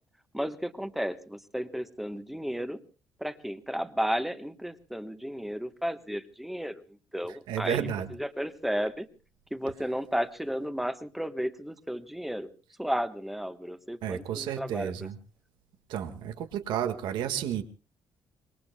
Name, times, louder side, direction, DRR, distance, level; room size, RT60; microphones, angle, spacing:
voice 1, 0.3-2.8 3.2-6.8 7.1-7.9 8.2-9.1 9.5-12.5 12.8-14.9, equal, ahead, 9 dB, 1.1 m, -33 dB
voice 2, 7.5-8.1 14.0-15.2 15.9-17.6, right 9 dB, 80° right, 8 dB, 1.7 m, -31 dB
26.0 x 22.5 x 2.2 m, 0.37 s
cardioid pair, 125°, 8 cm